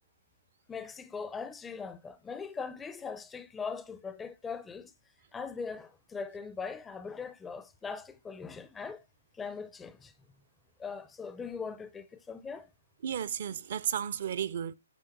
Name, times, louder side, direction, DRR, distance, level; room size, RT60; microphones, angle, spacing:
voice 1, 0.7-4.9 5.3-9.0 9.4-10.1 10.8-12.7, left 5 dB, 10° left, 0.4 m, -40 dB
voice 2, 13.0-14.8, right 9 dB, 55° right, 0.5 m, -33 dB
8.1 x 4.5 x 3.0 m
hypercardioid pair, 140°, 0 cm